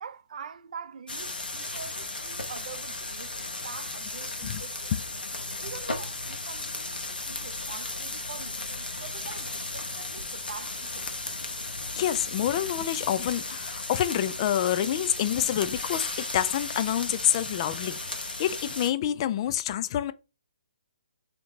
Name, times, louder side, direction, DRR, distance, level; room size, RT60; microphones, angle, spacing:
voice 1, 0.0-3.3 3.6-4.9 5.6-11.1, right 6 dB, 60° right, 0.5 m, -44 dB
sound 1, 1.1-18.9, left 2 dB, 90° left, 1.0 m, -35 dB
voice 2, 12.0-20.1, left 11 dB, 35° left, 0.4 m, -27 dB
3.5 x 2.9 x 3.9 m
hypercardioid pair, 145°, 5 cm